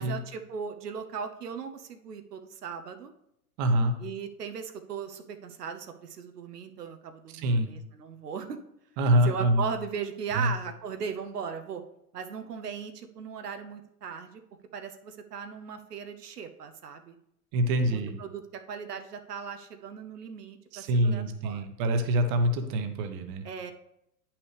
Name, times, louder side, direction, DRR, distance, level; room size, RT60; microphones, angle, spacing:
voice 1, 0.0-3.1 4.0-8.6 9.2-11.8 12.1-14.4 14.7-17.2 17.8-21.6 23.4-23.7, right 6 dB, 85° right, 7 dB, 0.8 m, -38 dB
voice 2, 3.6-3.9 7.3-7.7 9.0-9.6 10.3-10.5 17.5-18.2 20.7-23.4, right 1 dB, 35° right, 8 dB, 1.0 m, -25 dB
9.1 x 5.8 x 3.3 m, 0.79 s
hypercardioid pair, 105°, 46 cm